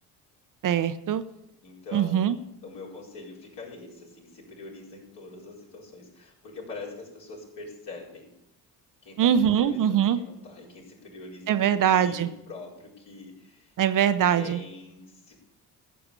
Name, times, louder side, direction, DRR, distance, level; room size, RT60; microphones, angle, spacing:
voice 1, 0.6-1.2 1.9-2.4 9.2-10.2 11.5-12.3 13.8-14.6, right 9 dB, 40° right, 12 dB, 0.7 m, -22 dB
voice 2, 1.6-8.3 9.0-9.3 9.6-13.8 14.3-15.4, left 3 dB, 60° left, -4 dB, 4.7 m, -43 dB
15.0 x 6.8 x 6.7 m, 0.86 s
hypercardioid pair, 50°, 47 cm